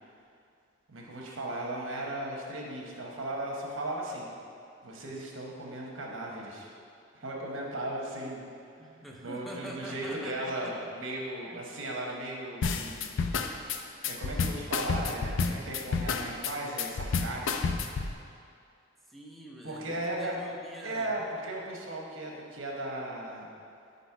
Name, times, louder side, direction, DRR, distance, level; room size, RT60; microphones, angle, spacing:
voice 1, 0.9-4.3 4.8-6.7 7.1-8.5 9.2-13.1 14.0-17.8 19.6-20.4 20.8-23.5, right 1 dB, 80° right, -1 dB, 1.0 m, -36 dB
voice 2, 8.8-10.9 11.5-11.6 19.1-21.1, equal, ahead, -2 dB, 0.5 m, -45 dB
sound 1, 12.6-18.1, left 5 dB, 70° left, 0.4 m, -30 dB
5.0 x 4.1 x 5.7 m, 2.4 s
head